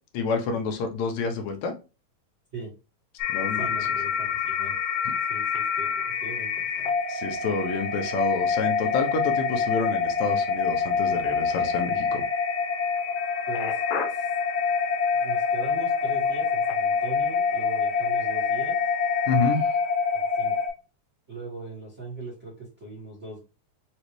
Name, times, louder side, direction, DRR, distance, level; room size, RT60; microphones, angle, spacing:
voice 1, 0.1-1.8 3.3-3.7 7.1-12.2 19.3-19.6, left 4 dB, 80° left, 5 dB, 2.1 m, -28 dB
sound 1, 3.2-20.7, left 5 dB, 65° left, 1.7 m, -26 dB
voice 2, 3.5-4.7 5.3-7.1 13.5-13.8 14.1-14.3 15.1-18.8 20.1-20.5 21.3-23.4, right 2 dB, 40° right, -4 dB, 1.0 m, -40 dB
5.4 x 2.5 x 3.0 m, 0.30 s
omnidirectional pair, 3.3 m